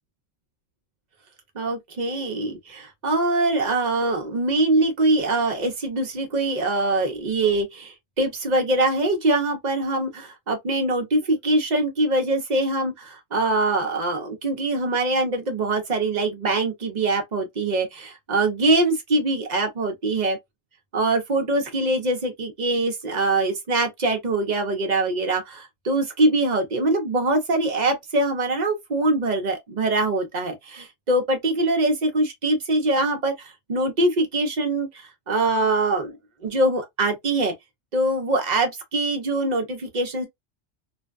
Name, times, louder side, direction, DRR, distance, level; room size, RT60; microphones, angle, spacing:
voice 1, 1.5-20.4 20.9-36.2 36.4-37.5 37.9-40.3, right 2 dB, 45° right, 0.7 m, -23 dB
2.5 x 2.2 x 2.4 m
omnidirectional pair, 1.3 m